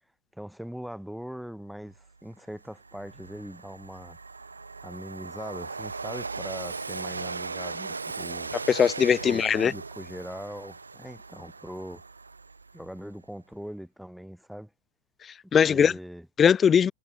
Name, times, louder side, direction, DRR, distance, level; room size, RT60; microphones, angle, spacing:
voice 1, 0.3-4.2 4.8-8.6 9.2-12.0 12.7-14.7 15.7-16.3, equal, ahead, 2.6 m, -41 dB
Train, 2.1-2.2 2.6-13.0, right 4 dB, 80° right, 0.6 m, -38 dB
voice 2, 8.7-9.7 15.5-15.9 16.4-16.9, left 7 dB, 20° left, 0.5 m, -20 dB
figure-of-eight pair, 90°, 0 cm